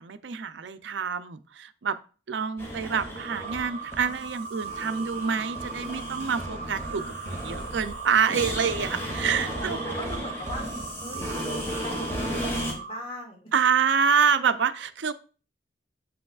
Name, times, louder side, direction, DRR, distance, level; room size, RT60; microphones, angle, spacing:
voice 1, 0.0-2.0 2.3-9.8 13.5-15.1, right 6 dB, 80° right, 11 dB, 0.5 m, -27 dB
sound 1, 2.6-12.7, equal, 15° left, 2.3 m, -34 dB
sound 2, 3.2-13.0, right 5 dB, 55° right, 0.8 m, -39 dB
voice 2, 9.4-10.7 11.0-12.2 12.5-13.4, left 1 dB, 35° left, 0 dB, 2.2 m, -40 dB
7.6 x 7.3 x 2.4 m, 0.37 s
head